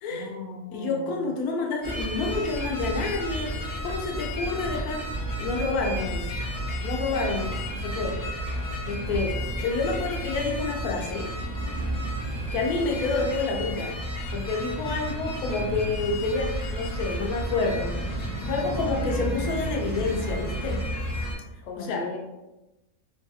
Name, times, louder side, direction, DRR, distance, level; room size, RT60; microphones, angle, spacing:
voice 1, 0.1-1.3 7.1-7.5 21.6-22.2, left 2 dB, 65° left, 0 dB, 0.7 m, -38 dB
voice 2, 0.7-5.1 5.4-6.3 6.8-8.2 8.8-11.3 12.5-14.0 14.3-18.0 18.5-20.8 21.8-22.0, left 3 dB, 85° left, 0 dB, 1.1 m, -29 dB
sound 1, 1.8-21.3, equal, 20° left, 0.5 m, -31 dB
3.0 x 2.3 x 2.7 m, 1.0 s
omnidirectional pair, 1.5 m